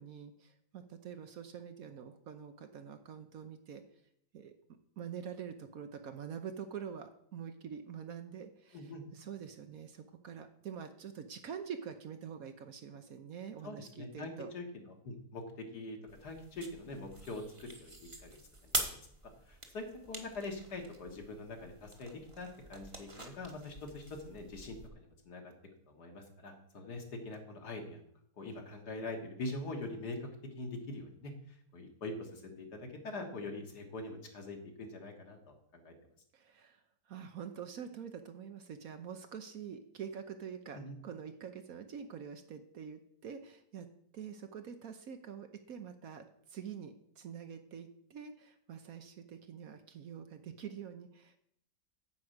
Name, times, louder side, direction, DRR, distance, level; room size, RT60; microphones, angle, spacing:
voice 1, 0.0-3.8 4.3-4.5 5.0-14.5 36.3-36.8 37.1-43.9 44.1-51.4, right 7 dB, 60° right, 8 dB, 1.1 m, -46 dB
voice 2, 8.7-9.0 13.6-19.0 19.5-25.5 25.9-28.0 28.4-30.3 30.6-35.9 40.7-41.0, left 2 dB, 65° left, 2 dB, 2.2 m, -44 dB
sound 1, 16.1-24.9, right 2 dB, 20° right, 1.0 m, -44 dB
9.7 x 4.8 x 7.9 m, 0.70 s
omnidirectional pair, 1.8 m